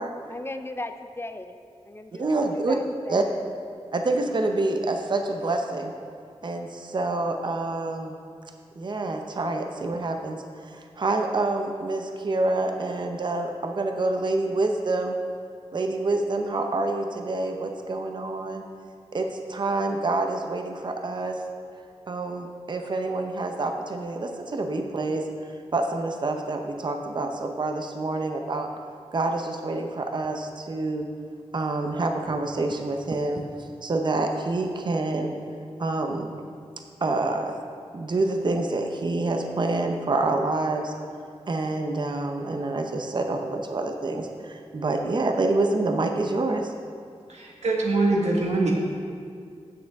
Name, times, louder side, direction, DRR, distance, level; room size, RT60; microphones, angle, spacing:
voice 1, 0.3-1.6 1.8-3.2, left 2 dB, 20° left, 8 dB, 0.4 m, -37 dB
voice 2, 2.2-2.8 3.1-3.2 3.9-5.9 6.4-8.2 8.8-15.2 15.7-18.6 19.1-21.4 22.1-25.2 25.7-28.7 29.1-31.1 31.5-35.4 35.8-36.3 37.0-37.6 37.9-40.9 41.5-46.7, right 2 dB, 45° right, 4 dB, 0.7 m, -27 dB
voice 3, 47.3-48.8, right 2 dB, 90° right, -1 dB, 1.6 m, -23 dB
15.5 x 6.6 x 3.5 m, 2.3 s
wide cardioid pair, 100°, 11 cm